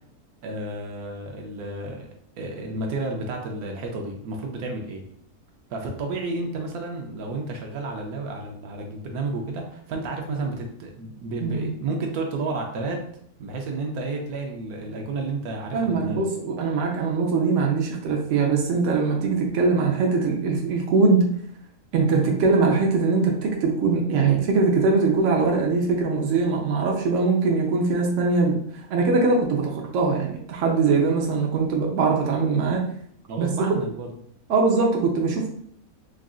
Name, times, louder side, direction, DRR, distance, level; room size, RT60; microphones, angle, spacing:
voice 1, 0.4-2.1 2.4-5.0 5.7-13.0 13.4-16.3 33.3-34.1, right 3 dB, 85° right, 1 dB, 1.2 m, -31 dB
voice 2, 15.7-21.3 21.9-28.6 28.9-32.9 33.4-33.5 34.5-35.5, right 4 dB, 60° right, 0 dB, 1.0 m, -22 dB
4.8 x 2.4 x 2.4 m, 0.64 s
omnidirectional pair, 1.5 m